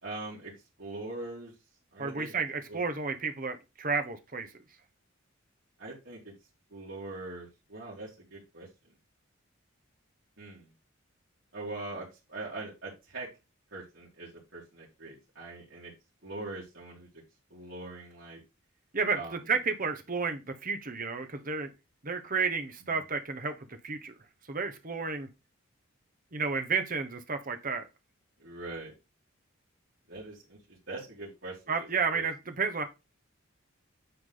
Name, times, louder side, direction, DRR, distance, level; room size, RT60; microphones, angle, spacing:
voice 1, 0.0-0.5 0.8-1.5 1.9-2.4 2.7-2.8 5.8-6.3 6.7-8.7 10.4-10.7 11.5-13.3 13.7-15.9 16.2-17.1 17.5-18.4 19.1-19.4 22.9-23.0 28.4-28.9 30.1-32.2, right 2 dB, 60° right, -7 dB, 2.7 m, -42 dB
voice 2, 2.0-4.5 18.9-21.7 22.0-23.5 23.8-24.1 24.5-25.3 26.3-27.8 31.7-32.9, right 5 dB, 40° right, 7 dB, 1.1 m, -31 dB
9.4 x 3.6 x 3.9 m, 0.25 s
head